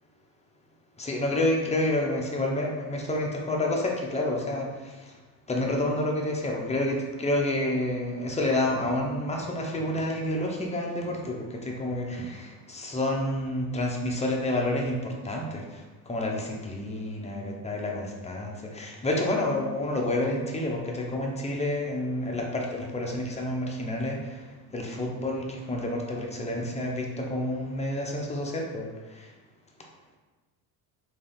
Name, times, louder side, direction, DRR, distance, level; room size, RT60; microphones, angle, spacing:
voice 1, 1.0-5.1 5.5-29.3, left 1 dB, 15° left, 0 dB, 0.7 m, -29 dB
3.2 x 2.6 x 3.7 m, 1.2 s
supercardioid pair, 80°, 43 cm